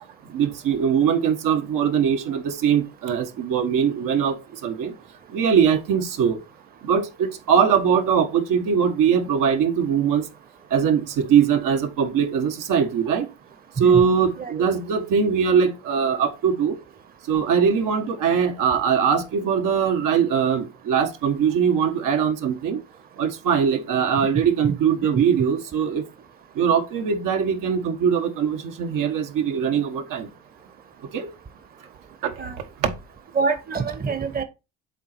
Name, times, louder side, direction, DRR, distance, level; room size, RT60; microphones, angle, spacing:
voice 1, 0.3-4.4 4.6-4.9 5.3-6.4 6.8-10.2 10.7-13.3 13.8-16.8 17.3-22.8 23.2-26.0 26.6-30.3 31.1-31.3 32.2-32.3 32.8-32.9, right 7 dB, 70° right, 1.4 m, -21 dB
voice 2, 33.3-34.4, right 5 dB, 25° right, 1.0 m, -25 dB
7.1 x 4.1 x 4.4 m
cardioid pair, 95°, 34 cm